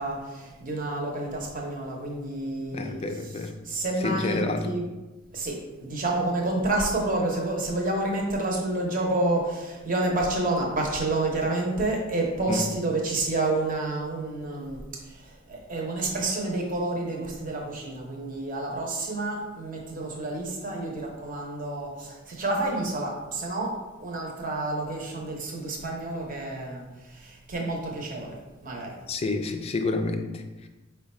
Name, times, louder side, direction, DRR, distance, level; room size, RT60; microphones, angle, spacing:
voice 1, 0.0-4.8 5.3-28.4 28.6-28.9, right 2 dB, 40° right, 0 dB, 0.8 m, -29 dB
voice 2, 2.7-3.6 4.0-4.7 12.5-12.7 29.1-30.7, left 3 dB, 30° left, 7 dB, 0.3 m, -29 dB
4.7 x 2.2 x 4.2 m, 1.1 s
head